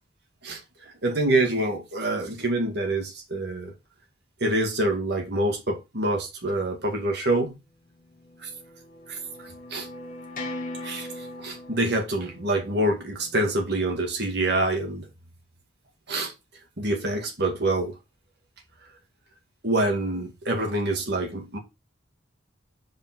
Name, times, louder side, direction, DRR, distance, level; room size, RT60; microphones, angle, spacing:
voice 1, 1.0-3.7 4.4-7.6 8.4-8.5 9.1-9.2 9.7-9.9 10.8-11.1 11.4-15.1 16.1-16.3 16.8-17.9 19.6-21.6, right 1 dB, 60° right, 2.3 m, -26 dB
sound 1, 8.1-13.8, left 2 dB, 45° left, 1.7 m, -40 dB
5.0 x 4.9 x 6.1 m
head